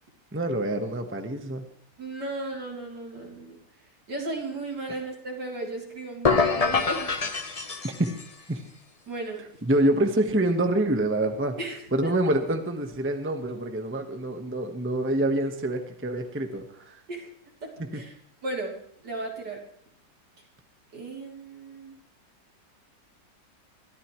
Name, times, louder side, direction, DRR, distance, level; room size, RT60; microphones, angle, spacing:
voice 1, 0.3-1.6 4.9-5.0 7.8-8.1 8.5-8.6 9.6-11.6 11.9-17.0 17.8-18.0, right 1 dB, 10° right, 6 dB, 1.1 m, -26 dB
voice 2, 2.0-3.6 4.1-7.1 9.1-9.4 11.6-12.1 17.1-17.3 17.6-18.1 18.4-18.8 19.0-19.6 20.9-22.0, right 2 dB, 65° right, -1 dB, 4.0 m, -35 dB
sound 1, 6.2-8.3, left 4 dB, 35° left, 0.6 m, -25 dB
23.0 x 14.0 x 3.1 m, 0.66 s
omnidirectional pair, 1.9 m